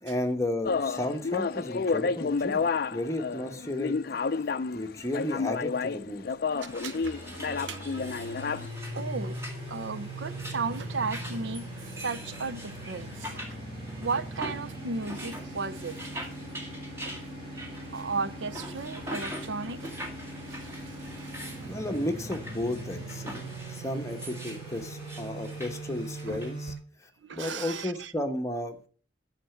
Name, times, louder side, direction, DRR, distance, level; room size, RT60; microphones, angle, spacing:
voice 1, 0.0-2.6 2.9-4.0 4.4-4.5 4.7-6.3 21.7-26.7 27.0-28.9, left 1 dB, 15° left, 1.1 m, -33 dB
sound 1, 0.7-8.7, left 4 dB, 50° left, 0.4 m, -30 dB
sound 2, 6.6-26.5, equal, 15° right, 2.0 m, -44 dB
sound 3, 7.0-26.7, right 1 dB, 30° right, 5.8 m, -40 dB
voice 2, 8.9-9.4 9.7-11.7 12.0-13.5 14.0-16.1 17.1-17.2 17.9-20.0 20.5-20.8 21.2-21.3 26.3-26.4 27.2-28.1, right 4 dB, 75° right, 0.6 m, -35 dB
9.9 x 5.9 x 7.2 m
head